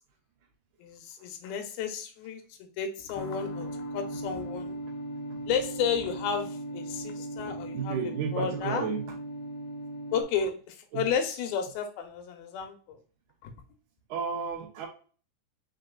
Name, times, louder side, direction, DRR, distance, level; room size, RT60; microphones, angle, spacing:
voice 1, 0.8-3.7 3.9-4.8 5.5-8.0 8.3-8.9 10.1-13.0 13.4-13.5, left 7 dB, 90° left, 5 dB, 2.7 m, -32 dB
sound 1, 3.1-10.2, right 1 dB, 75° left, 1.5 m, -38 dB
voice 2, 7.7-9.1 10.9-11.1 14.1-14.9, right 6 dB, 70° right, 1 dB, 2.1 m, -32 dB
5.8 x 3.9 x 2.2 m, 0.40 s
omnidirectional pair, 4.2 m